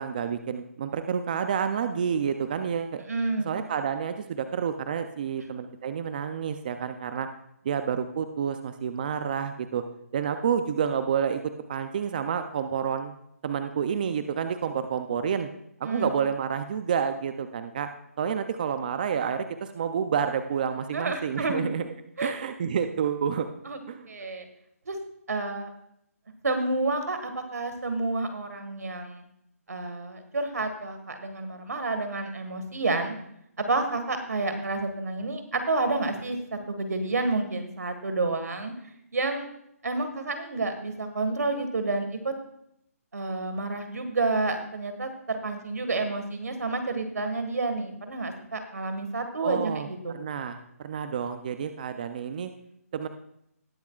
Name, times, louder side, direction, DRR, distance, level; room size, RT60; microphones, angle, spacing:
voice 1, 0.0-3.0 3.4-7.3 7.6-9.8 10.1-11.4 11.7-13.1 13.4-15.5 15.8-17.9 18.2-21.9 22.2-23.5 23.9-24.1 49.4-49.9 50.1-52.5 52.9-53.1, right 7 dB, 35° right, 9 dB, 0.5 m, -29 dB
voice 2, 3.1-3.5 5.4-5.5 15.8-16.1 20.9-21.6 22.2-22.3 23.6-23.8 24.1-24.4 24.8-25.0 25.3-25.7 26.4-29.2 29.7-33.1 33.6-38.7 39.1-39.5 39.8-42.3 43.1-50.1, right 3 dB, 90° right, 7 dB, 1.8 m, -29 dB
19.0 x 7.0 x 2.4 m, 0.74 s
hypercardioid pair, 165°, 8 cm